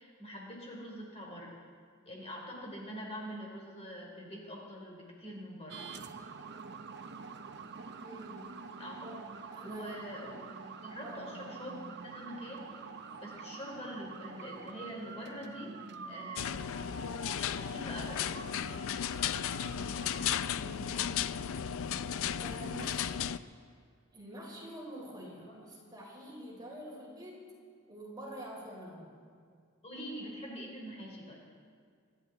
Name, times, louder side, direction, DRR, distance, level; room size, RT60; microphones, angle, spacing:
voice 1, 0.0-1.6 2.0-5.9 8.8-9.0 9.6-10.4 10.8-12.7 13.2-15.7 16.1-16.9 17.3-18.4 25.5-25.6 29.8-31.4, equal, 30° left, -2 dB, 3.3 m, -44 dB
sound 1, 5.7-20.5, right 5 dB, 55° right, 0.8 m, -47 dB
voice 2, 8.0-8.6 8.9-9.2 9.5-10.0 11.0-11.3 20.5-21.0 22.3-23.3 24.1-27.5 27.9-29.1, equal, 20° right, -3 dB, 3.9 m, -46 dB
sound 2, 16.4-23.4, left 8 dB, 65° left, 0.4 m, -35 dB
26.5 x 12.0 x 3.9 m, 2.2 s
head